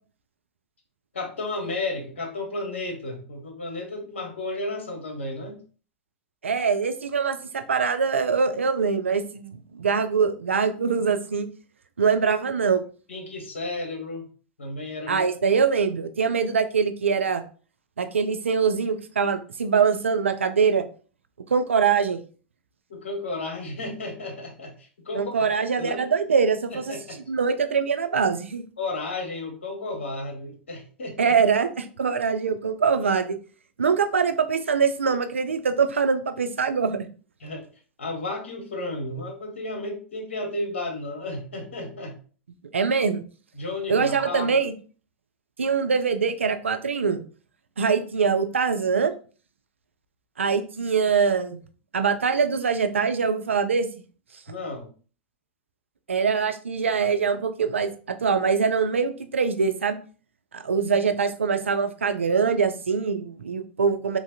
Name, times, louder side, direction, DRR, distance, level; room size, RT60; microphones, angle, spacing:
voice 1, 1.1-5.6 13.1-14.3 14.6-15.2 22.9-25.5 25.8-26.0 26.7-27.2 28.8-31.3 37.4-37.6 38.0-42.2 43.5-44.5 54.5-54.9, left 2 dB, 80° left, 2 dB, 1.0 m, -33 dB
voice 2, 6.4-11.5 12.0-12.8 15.1-17.4 18.0-20.8 21.5-22.2 25.1-26.9 27.3-28.6 31.2-33.4 33.8-37.1 42.7-43.2 43.9-44.7 45.6-47.2 47.8-49.1 50.4-51.6 51.9-53.9 56.1-60.0 60.5-64.2, right 5 dB, 90° right, 9 dB, 0.3 m, -23 dB
3.1 x 2.5 x 2.6 m, 0.39 s
hypercardioid pair, 95°, 6 cm